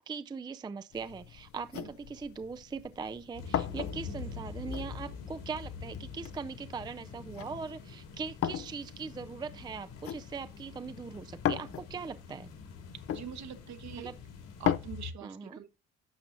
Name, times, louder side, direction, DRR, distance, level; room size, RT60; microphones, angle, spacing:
voice 1, 0.0-12.5 14.0-14.2 15.2-15.6, right 5 dB, 15° right, 0.4 m, -40 dB
sound 1, 0.9-14.8, left 10 dB, 45° left, 0.5 m, -39 dB
sound 2, 3.3-15.1, left 5 dB, 75° left, 2.9 m, -45 dB
voice 2, 13.1-14.1 14.6-15.7, right 9 dB, 60° right, 1.1 m, -44 dB
11.0 x 6.6 x 2.6 m
supercardioid pair, 60°, 31 cm